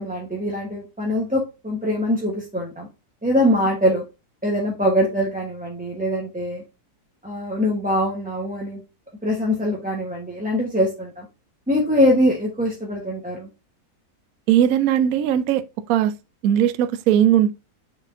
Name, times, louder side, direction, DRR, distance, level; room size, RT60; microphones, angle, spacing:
voice 1, 0.0-2.9 3.2-4.0 4.4-6.6 7.2-8.8 9.2-11.3 11.7-13.5, equal, 5° right, 1.0 m, -23 dB
voice 2, 14.5-15.6 15.9-16.1 16.4-17.5, right 10 dB, 65° right, 1.0 m, -18 dB
7.0 x 5.5 x 2.7 m
omnidirectional pair, 1.8 m